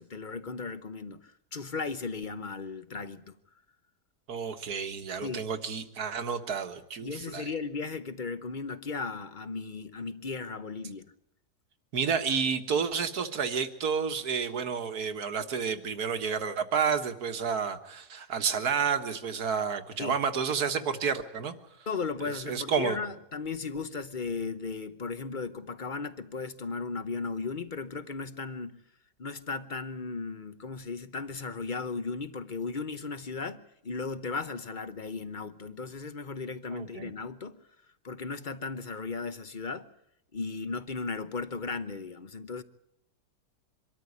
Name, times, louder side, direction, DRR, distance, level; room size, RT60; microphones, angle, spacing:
voice 1, 0.0-3.4 5.2-5.4 7.0-11.1 20.0-20.2 21.9-28.8 29.2-37.6 38.0-39.9 40.3-42.6, left 4 dB, 35° left, 0.8 m, -36 dB
voice 2, 4.3-7.5 11.9-21.5 22.3-23.0 36.7-37.1, right 6 dB, 65° right, 1.9 m, -30 dB
24.5 x 13.0 x 9.6 m
omnidirectional pair, 1.8 m